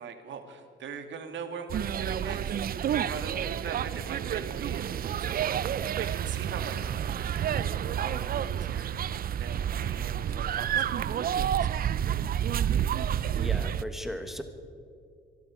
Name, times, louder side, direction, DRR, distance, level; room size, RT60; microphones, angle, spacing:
voice 1, 0.0-9.1 9.4-11.9, right 6 dB, 70° right, 6 dB, 2.0 m, -42 dB
sound 1, 1.7-13.8, right 9 dB, 50° right, 0.5 m, -29 dB
voice 2, 13.3-14.4, equal, ahead, 7 dB, 1.4 m, -37 dB
25.0 x 12.0 x 4.9 m, 2.4 s
cardioid pair, 90°, 20 cm